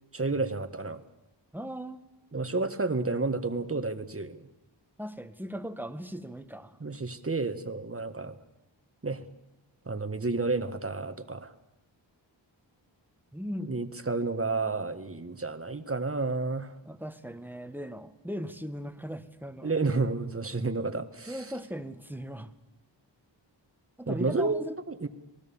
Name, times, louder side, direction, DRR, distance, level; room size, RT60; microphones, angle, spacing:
voice 1, 0.1-1.0 2.3-4.4 6.8-8.4 9.0-9.2 9.8-11.5 13.6-16.7 19.6-21.5 24.1-24.6 24.9-25.1, right 3 dB, 30° right, 10 dB, 1.7 m, -30 dB
voice 2, 1.5-2.0 5.0-6.8 13.3-13.8 16.8-19.7 21.3-22.5 24.0-24.7, equal, 5° right, 10 dB, 1.6 m, -38 dB
27.0 x 19.0 x 7.2 m, 0.98 s
wide cardioid pair, 60°, 45 cm